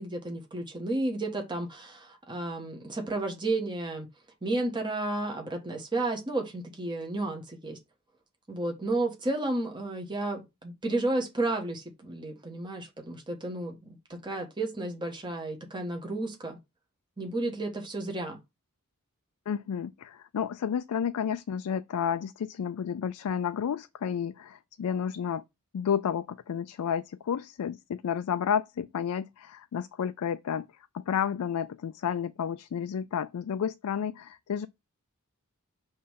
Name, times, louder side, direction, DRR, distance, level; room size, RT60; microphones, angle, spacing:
voice 1, 0.0-4.1 4.4-7.8 8.5-16.6 17.2-18.4, right 2 dB, 20° right, 1.4 m, -32 dB
voice 2, 19.5-25.4 25.7-30.7 30.9-34.7, left 8 dB, 80° left, 0.4 m, -31 dB
5.6 x 3.2 x 5.6 m
head